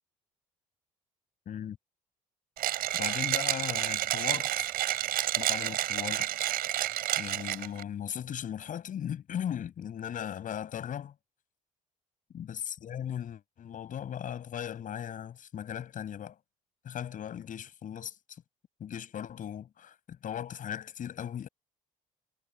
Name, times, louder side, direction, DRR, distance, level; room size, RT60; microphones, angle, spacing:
voice 1, 1.5-1.8 2.9-4.7 5.4-6.4 7.2-11.1 12.3-16.4 16.8-18.4 18.8-21.5, left 9 dB, 55° left, 7.3 m, -38 dB
Mechanisms, 2.6-7.8, right 13 dB, 65° right, 4.5 m, -30 dB
hypercardioid pair, 55°, 17 cm